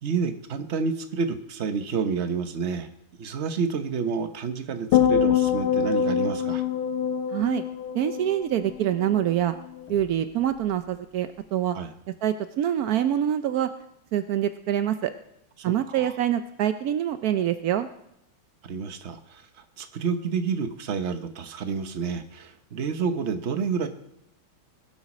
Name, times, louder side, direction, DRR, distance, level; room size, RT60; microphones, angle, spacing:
voice 1, 0.0-2.9 3.2-6.6 11.7-11.9 15.6-16.1 18.6-19.5 19.8-23.9, right 5 dB, 45° right, 9 dB, 0.9 m, -29 dB
sound 1, 4.9-9.3 9.6-10.0, left 8 dB, 75° left, 1.7 m, -25 dB
voice 2, 7.3-7.6 7.9-9.5 9.9-11.8 12.2-13.7 14.1-15.1 15.6-17.9, right 11 dB, 85° right, 10 dB, 0.8 m, -25 dB
20.5 x 7.3 x 6.1 m, 0.80 s
omnidirectional pair, 2.3 m